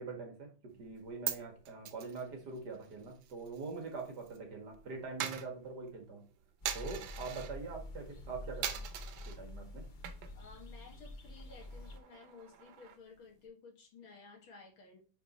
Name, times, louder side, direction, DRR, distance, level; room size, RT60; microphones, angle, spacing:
voice 1, 0.0-6.2 6.7-8.9 9.3-9.8, right 4 dB, 55° right, 2 dB, 2.3 m, -44 dB
Coin (dropping), 0.8-4.4 4.6-7.6 8.0-8.3 8.6-9.4 9.9-10.5 10.8-10.9 11.2-13.2, right 9 dB, 75° right, 1.6 m, -43 dB
sound 1, 6.6-12.0, left 2 dB, 55° left, 0.5 m, -47 dB
voice 2, 10.3-15.0, left 4 dB, 85° left, 2 dB, 2.6 m, -55 dB
9.1 x 4.2 x 3.1 m, 0.38 s
omnidirectional pair, 2.2 m